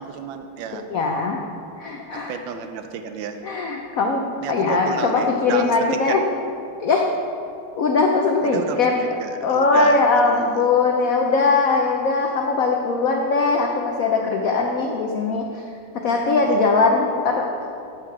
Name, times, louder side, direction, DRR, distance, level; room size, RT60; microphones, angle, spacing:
voice 1, 0.0-0.8 2.1-3.4 4.4-6.2 8.4-10.7 16.4-16.6, right 7 dB, 70° right, 7 dB, 1.3 m, -31 dB
voice 2, 0.7-1.4 1.8-2.4 3.4-6.2 6.8-7.1 7.8-9.0 9.4-15.6 15.9-17.7, left 4 dB, 90° left, 1 dB, 0.7 m, -20 dB
13.0 x 4.6 x 5.8 m, 2.6 s
omnidirectional pair, 2.4 m